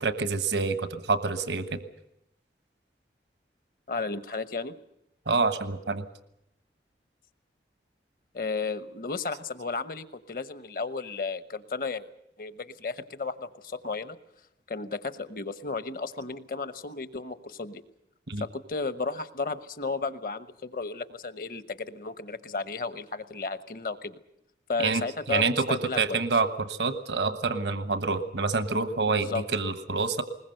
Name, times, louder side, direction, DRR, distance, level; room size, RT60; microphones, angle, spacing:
voice 1, 0.0-1.8 5.3-6.1 18.3-18.4 24.8-30.2, right 4 dB, 85° right, 11 dB, 1.3 m, -27 dB
voice 2, 3.9-4.7 8.3-12.0 12.4-14.2 14.7-17.8 18.4-24.2 24.7-26.2 29.1-29.4, left 4 dB, 50° left, 13 dB, 1.0 m, -33 dB
21.0 x 20.5 x 7.8 m, 0.79 s
head